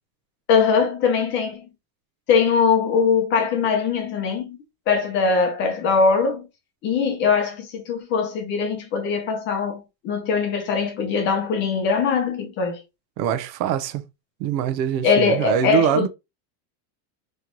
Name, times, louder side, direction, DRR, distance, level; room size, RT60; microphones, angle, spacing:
voice 1, 0.5-1.6 2.3-4.6 4.9-6.5 6.8-12.8 15.0-16.1, left 5 dB, 25° left, 0.5 m, -21 dB
voice 2, 13.2-14.0 14.4-16.1, right 9 dB, 90° right, 0.8 m, -23 dB
3.8 x 3.2 x 2.9 m
supercardioid pair, 175°, 48 cm